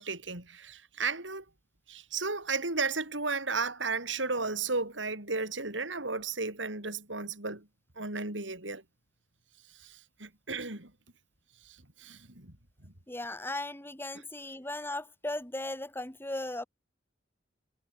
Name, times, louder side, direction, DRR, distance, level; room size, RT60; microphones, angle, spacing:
voice 1, 0.0-1.4 1.9-7.7 8.0-8.8 9.8-10.9 11.6-12.5 12.8-12.9, right 4 dB, 90° right, 6.4 m, -34 dB
voice 2, 13.1-16.7, left 1 dB, 10° left, 2.5 m, -37 dB
head